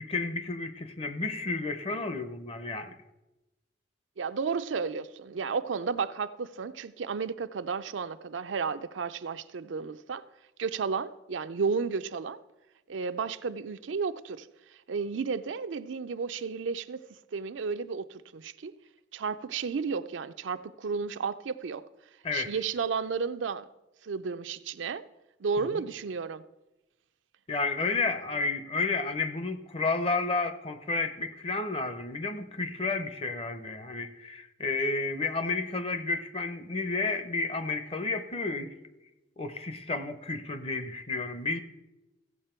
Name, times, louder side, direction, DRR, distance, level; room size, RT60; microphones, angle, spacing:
voice 1, 0.0-3.0 22.2-22.5 25.6-25.8 27.5-38.7 39.4-41.6, left 3 dB, 30° left, 0.7 m, -31 dB
voice 2, 4.2-10.2 10.6-12.4 12.9-14.5 14.9-17.0 17.3-18.7 19.1-21.8 22.3-23.7 24.0-25.0 25.4-26.4, right 5 dB, 85° right, 0.5 m, -32 dB
15.5 x 7.4 x 4.4 m
head